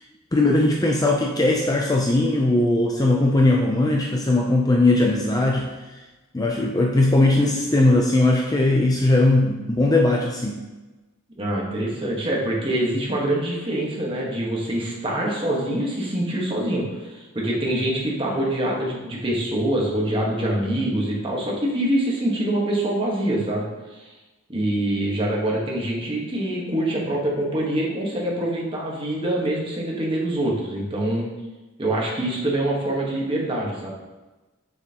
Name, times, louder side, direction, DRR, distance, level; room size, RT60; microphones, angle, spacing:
voice 1, 0.3-5.7 6.3-10.6, left 2 dB, 15° left, 0 dB, 0.4 m, -19 dB
voice 2, 11.4-24.1 24.5-31.3 31.8-33.9, right 1 dB, 25° right, -3 dB, 1.3 m, -25 dB
6.8 x 6.5 x 2.9 m, 1.1 s
head